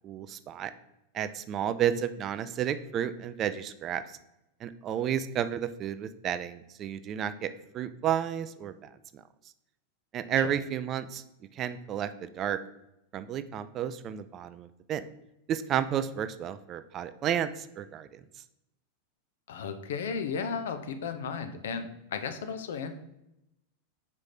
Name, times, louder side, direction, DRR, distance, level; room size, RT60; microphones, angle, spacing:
voice 1, 0.0-0.7 1.1-4.0 4.6-9.2 10.1-11.2 11.5-12.6 13.1-15.0 15.5-18.2, right 9 dB, 30° right, 13 dB, 0.4 m, -32 dB
voice 2, 19.5-22.9, left 6 dB, 60° left, 8 dB, 0.6 m, -34 dB
5.3 x 4.8 x 4.3 m, 0.87 s
figure-of-eight pair, 90°, 0 cm